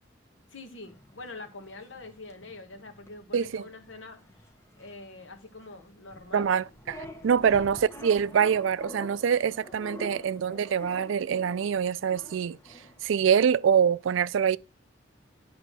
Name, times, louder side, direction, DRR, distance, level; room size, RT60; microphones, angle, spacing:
voice 1, 0.5-4.5 4.8-6.5 7.3-7.6, left 3 dB, 75° left, 1.6 m, -45 dB
sound 1, 0.9-13.1, left 2 dB, 15° left, 0.9 m, -47 dB
voice 2, 3.3-3.7 6.3-12.6 13.0-14.6, right 7 dB, 80° right, 0.4 m, -25 dB
11.0 x 3.8 x 6.0 m
head